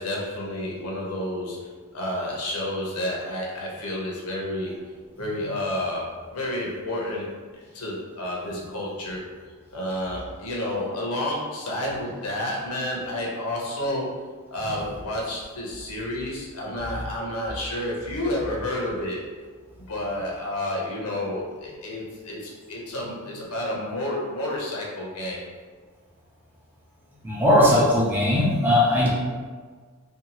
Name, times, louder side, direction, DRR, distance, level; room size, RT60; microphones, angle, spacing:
voice 1, 0.0-4.8 5.2-9.2 9.7-19.2 19.8-25.4, left 1 dB, 85° left, -3 dB, 0.7 m, -30 dB
voice 2, 27.2-29.1, left 1 dB, 10° right, -6 dB, 0.5 m, -19 dB
2.6 x 2.3 x 2.9 m, 1.5 s
head